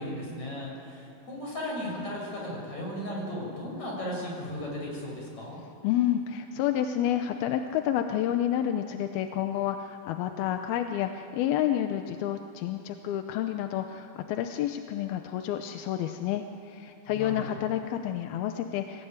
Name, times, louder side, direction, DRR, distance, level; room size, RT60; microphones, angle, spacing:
voice 1, 0.0-5.6 17.1-17.6, left 1 dB, 50° left, -2 dB, 8.4 m, -36 dB
voice 2, 5.8-19.1, left 11 dB, 85° left, 6 dB, 2.8 m, -29 dB
26.0 x 18.0 x 9.5 m, 2.5 s
omnidirectional pair, 4.2 m